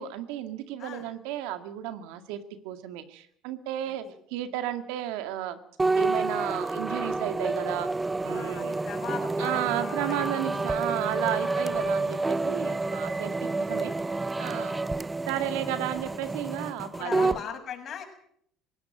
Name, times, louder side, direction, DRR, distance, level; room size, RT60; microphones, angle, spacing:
voice 1, 0.0-4.0 4.3-5.6 6.0-7.9 8.2-8.8 9.4-13.9 14.4-14.7 15.3-17.4, right 12 dB, 75° right, 9 dB, 2.0 m, -33 dB
sound 1, 5.8-17.4, right 3 dB, 15° right, 0.7 m, -29 dB
voice 2, 8.2-10.3 11.3-11.6 14.7-14.9 16.8-18.0, left 8 dB, 50° left, 4 dB, 6.9 m, -39 dB
19.5 x 17.5 x 7.9 m, 0.65 s
supercardioid pair, 80°, 0 cm